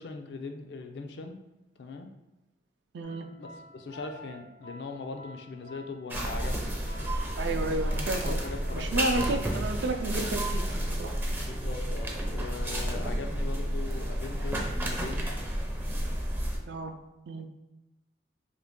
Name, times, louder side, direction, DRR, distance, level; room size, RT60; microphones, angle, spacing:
voice 1, 0.0-1.4 1.8-2.1 3.3-6.8 7.5-7.9 8.2-9.4 11.4-15.3, left 4 dB, 65° left, 5 dB, 0.4 m, -40 dB
voice 2, 2.9-3.3 7.3-8.4 8.7-11.1 16.7-16.9 17.3-17.6, right 2 dB, 75° right, 6 dB, 0.4 m, -32 dB
sound 1, 3.0-10.3, equal, 90° left, 0.8 m, -50 dB
sound 2, 6.1-16.6, equal, 10° right, 0.4 m, -31 dB
2.9 x 2.6 x 3.5 m, 0.99 s
head